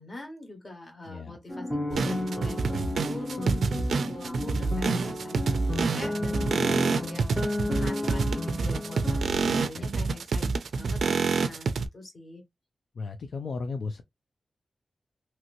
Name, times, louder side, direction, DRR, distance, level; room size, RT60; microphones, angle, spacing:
voice 1, 0.0-5.6 5.9-10.5 10.7-12.4, left 2 dB, 35° left, 1.4 m, -43 dB
voice 2, 1.1-1.4 6.6-7.0 9.7-10.0 12.9-14.0, left 4 dB, 65° left, 0.4 m, -35 dB
sound 1, 1.5-9.3, left 1 dB, 5° left, 0.7 m, -33 dB
sound 2, 1.9-11.9, right 4 dB, 90° right, 0.3 m, -27 dB
2.9 x 2.9 x 2.6 m
wide cardioid pair, 135°, 0 cm